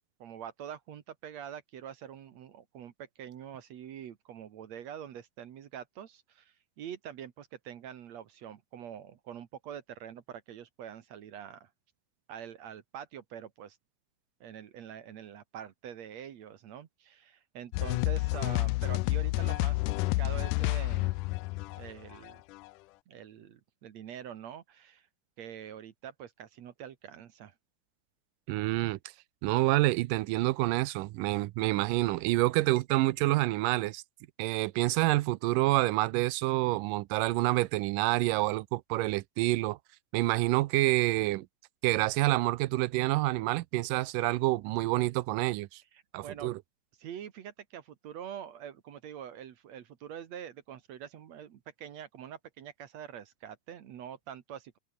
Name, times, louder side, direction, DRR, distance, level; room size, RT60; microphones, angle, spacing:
voice 1, 0.2-11.7 12.3-13.8 14.4-21.2 21.7-22.4 23.1-25.1 25.4-27.5 45.9-46.6 47.0-54.8, right 9 dB, 60° right, 2.4 m, -45 dB
sound 1, 17.7-22.7, left 21 dB, 80° left, 1.9 m, -30 dB
voice 2, 28.5-29.0 29.4-34.0 34.4-39.8 40.1-41.5 41.8-45.8 46.1-46.6, right 18 dB, 90° right, 2.3 m, -27 dB
omnidirectional pair, 3.8 m